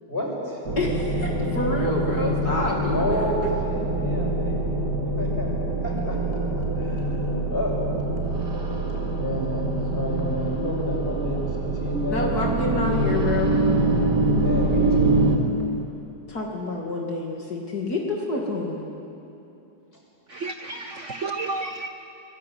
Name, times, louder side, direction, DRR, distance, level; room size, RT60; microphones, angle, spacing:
voice 1, 0.1-0.6 1.8-2.0 2.9-4.6 5.2-5.5 5.8-7.7 9.1-12.3 14.3-15.4, equal, 30° left, -2 dB, 6.9 m, -30 dB
sound 1, 0.6-15.4, right 2 dB, 70° right, 3.0 m, -25 dB
voice 2, 0.8-3.3 12.1-13.6 16.3-18.8, left 2 dB, 60° left, -1 dB, 3.0 m, -27 dB
voice 3, 20.3-21.9, right 3 dB, 50° right, 6 dB, 1.1 m, -31 dB
24.0 x 22.0 x 9.6 m, 2.8 s
omnidirectional pair, 1.9 m